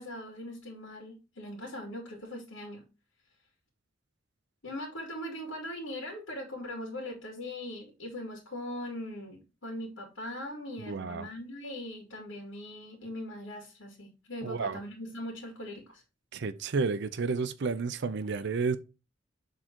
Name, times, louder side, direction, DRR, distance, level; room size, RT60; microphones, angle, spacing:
voice 1, 0.0-2.8 4.6-16.0, left 1 dB, 75° left, 2.3 m, -40 dB
voice 2, 10.8-11.3 14.4-14.8 16.3-18.8, right 4 dB, 60° right, 0.5 m, -31 dB
6.6 x 3.7 x 4.4 m
head